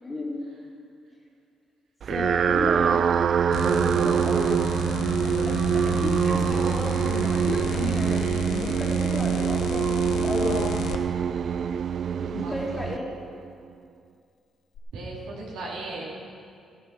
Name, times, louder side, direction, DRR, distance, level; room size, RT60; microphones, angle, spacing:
voice 1, 0.0-0.4 2.1-3.0 3.6-4.5 5.2-10.6 12.2-13.1 15.9-16.0, left 2 dB, 20° left, -8 dB, 3.8 m, -33 dB
sound 1, 2.0-13.5, right 8 dB, 55° right, 0.3 m, -25 dB
sound 2, 3.5-11.0 14.7-14.8, left 8 dB, 70° left, 0.9 m, -33 dB
voice 2, 12.2-12.8 14.9-16.0, right 2 dB, 85° right, -4 dB, 3.1 m, -36 dB
14.0 x 9.2 x 5.9 m, 2.4 s
cardioid pair, 90°, 0 cm